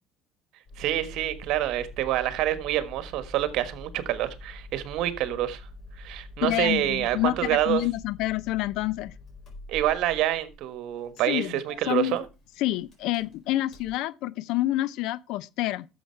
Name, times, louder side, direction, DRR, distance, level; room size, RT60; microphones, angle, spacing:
Engine starting, 0.7-14.0, left 1 dB, 40° left, 4.4 m, -45 dB
voice 1, 0.8-5.6 6.0-7.8 9.7-12.2, right 13 dB, 70° right, 1.4 m, -27 dB
voice 2, 6.4-9.1 11.3-11.6 11.9-12.2 12.6-15.9, left 16 dB, 70° left, 0.5 m, -28 dB
11.0 x 7.1 x 4.5 m
cardioid pair, 125°, 0 cm